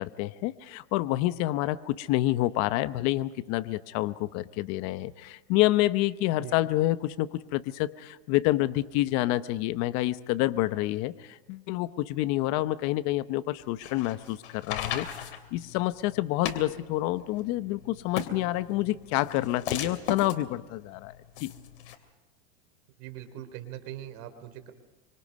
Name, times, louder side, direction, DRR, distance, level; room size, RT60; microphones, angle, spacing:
voice 1, 0.0-21.5, left 16 dB, 55° left, 13 dB, 1.0 m, -28 dB
sound 1, 13.6-21.9, left 8 dB, 80° left, 3.1 m, -37 dB
voice 2, 23.0-24.7, right 12 dB, 60° right, 10 dB, 3.4 m, -41 dB
26.0 x 25.0 x 5.4 m, 1.0 s
supercardioid pair, 125°, 32 cm